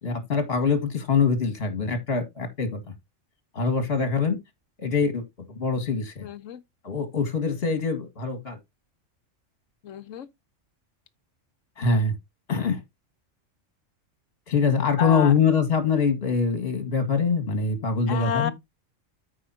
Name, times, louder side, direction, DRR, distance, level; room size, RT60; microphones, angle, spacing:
voice 1, 0.0-2.8 3.5-4.4 4.8-5.2 5.6-6.3 6.8-8.6 11.8-12.2 12.5-12.8 14.5-18.5, left 5 dB, 50° left, 2.1 m, -24 dB
voice 2, 6.2-6.6 9.8-10.3 15.0-15.3 18.1-18.5, left 9 dB, 75° left, 1.1 m, -30 dB
13.5 x 5.0 x 2.8 m
omnidirectional pair, 1.4 m